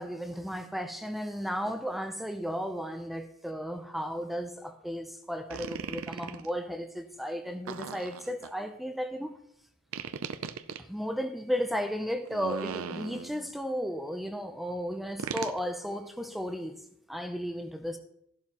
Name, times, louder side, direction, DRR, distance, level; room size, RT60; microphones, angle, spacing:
voice 1, 0.0-9.3 10.8-16.8 17.1-18.0, equal, ahead, 0.6 m, -34 dB
sound 1, 5.5-6.5 7.7-8.5 9.9-10.8 12.3-13.5 15.2-15.6, right 6 dB, 65° right, 0.6 m, -38 dB
13.0 x 11.5 x 3.0 m
head